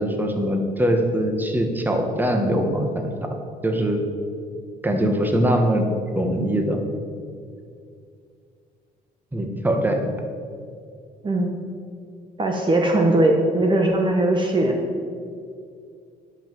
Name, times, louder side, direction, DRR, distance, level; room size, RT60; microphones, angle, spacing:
voice 1, 0.0-3.3 3.6-4.0 4.8-5.9 6.1-6.8 9.3-10.0, right 1 dB, 10° right, 4 dB, 1.4 m, -22 dB
voice 2, 11.2-11.6 12.4-14.8, right 1 dB, 30° right, 2 dB, 1.1 m, -20 dB
11.0 x 5.8 x 7.6 m, 2.3 s
cardioid pair, 110°, 17 cm